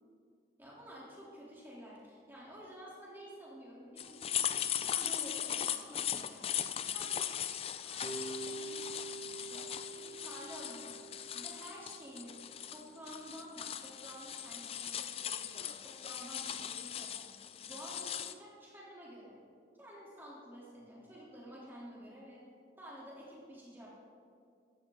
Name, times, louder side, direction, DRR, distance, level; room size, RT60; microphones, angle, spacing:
voice 1, 0.6-4.5 4.9-7.4 7.8-8.1 8.4-8.7 9.1-11.0 11.3-12.4 12.7-19.4 19.8-22.4 22.8-23.9, equal, 10° right, -6 dB, 3.3 m, -51 dB
sound 1, 4.0-18.3, left 10 dB, 30° left, 0.4 m, -39 dB
sound 2, 8.0-13.1, right 3 dB, 35° right, 0.8 m, -47 dB
14.5 x 11.5 x 3.9 m, 2.3 s
head